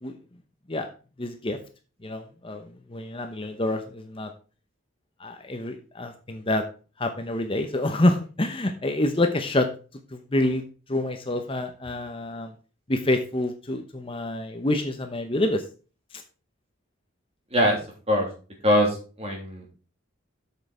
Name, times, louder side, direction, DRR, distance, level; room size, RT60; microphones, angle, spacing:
voice 1, 1.2-1.6 2.0-4.3 5.2-6.6 7.0-9.7 10.1-10.6 10.9-12.5 12.9-15.6, left 1 dB, 25° left, 6 dB, 0.8 m, -27 dB
voice 2, 18.6-19.7, equal, 30° right, 0 dB, 3.1 m, -22 dB
8.5 x 6.5 x 4.3 m, 0.36 s
head